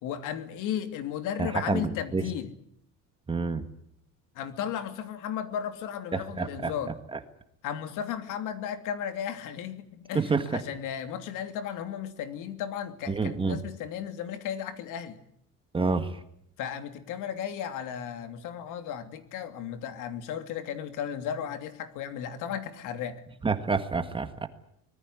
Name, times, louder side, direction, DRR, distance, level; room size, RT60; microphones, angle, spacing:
voice 1, 0.0-2.5 4.3-6.9 7.6-15.2 16.6-23.2, left 9 dB, 70° left, 9 dB, 3.0 m, -35 dB
voice 2, 1.4-2.2 3.3-3.6 6.1-6.7 7.1-7.2 10.1-10.6 13.1-13.6 15.7-16.2 23.4-24.5, right 4 dB, 15° right, 9 dB, 1.6 m, -28 dB
25.0 x 19.5 x 9.6 m, 0.73 s
cardioid pair, 155°, 32 cm